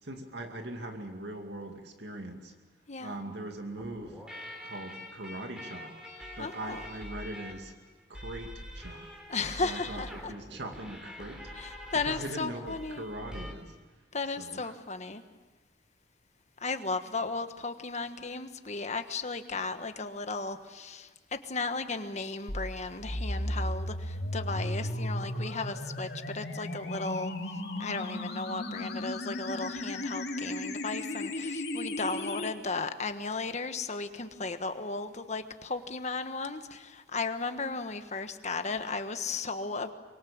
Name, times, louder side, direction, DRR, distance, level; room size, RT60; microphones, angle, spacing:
voice 1, 0.0-2.5 3.0-4.2 4.6-6.0 6.4-7.7 8.1-9.1 9.6-11.5 11.9-13.8 14.4-14.8, right 1 dB, 75° right, 4 dB, 2.4 m, -41 dB
voice 2, 2.9-3.2 6.4-6.8 9.3-10.3 11.5-13.0 14.1-15.2 16.6-27.3 27.8-39.9, left 3 dB, 40° left, 8 dB, 1.4 m, -35 dB
sound 1, 3.8-13.5, equal, 5° right, 3.5 m, -45 dB
sound 2, 22.5-32.5, left 1 dB, 70° left, 2.7 m, -35 dB
24.5 x 23.5 x 7.3 m, 1.2 s
head